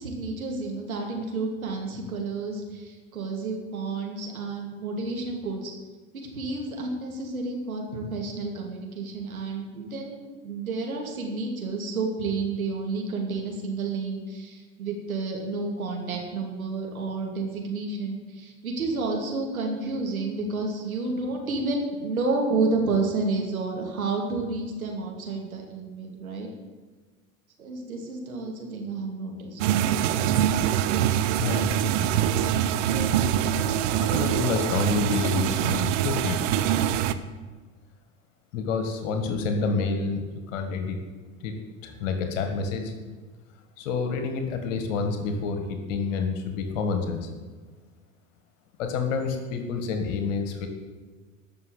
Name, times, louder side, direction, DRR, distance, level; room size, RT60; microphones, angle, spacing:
voice 1, 0.0-5.7 6.1-26.5 27.6-29.6, right 3 dB, 85° right, 1 dB, 2.6 m, -30 dB
sound 1, 29.6-37.1, right 10 dB, 60° right, 0.8 m, -24 dB
voice 2, 31.4-32.1 32.9-33.7 34.0-36.5 38.5-40.2 40.5-41.0 41.4-42.9 43.8-47.3 48.8-50.7, left 4 dB, 65° left, 6 dB, 1.8 m, -29 dB
13.5 x 6.2 x 8.2 m, 1.4 s
hypercardioid pair, 80°, 41 cm